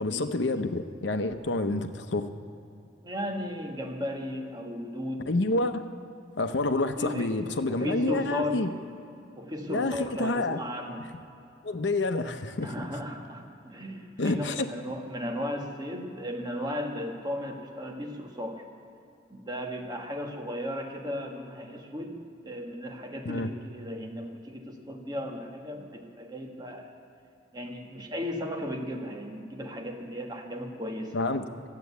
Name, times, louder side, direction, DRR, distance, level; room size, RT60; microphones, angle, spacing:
voice 1, 0.0-2.3 5.3-5.8 6.4-8.7 9.7-10.6 11.6-12.8 14.2-14.7 23.2-23.5 31.1-31.4, left 2 dB, 75° left, 8 dB, 0.8 m, -28 dB
voice 2, 3.0-5.3 7.0-7.4 7.7-8.6 9.4-11.1 12.6-18.6 19.3-22.2 22.4-26.9 27.5-31.1, left 1 dB, 20° right, 1 dB, 1.5 m, -35 dB
14.5 x 9.0 x 8.3 m, 2.7 s
head